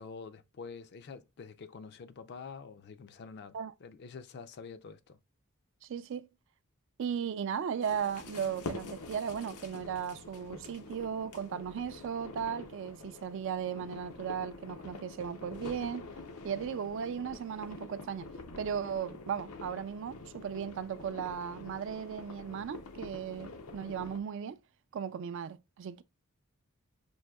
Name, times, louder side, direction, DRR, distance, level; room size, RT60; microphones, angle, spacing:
voice 1, 0.0-5.2, left 5 dB, 50° left, 0.4 m, -47 dB
voice 2, 5.8-6.3 7.0-16.1 16.4-18.3 18.6-24.6 24.9-26.0, right 7 dB, 55° right, 0.3 m, -36 dB
sound 1, 7.8-24.2, left 3 dB, 85° left, 0.6 m, -46 dB
6.1 x 2.7 x 2.2 m
head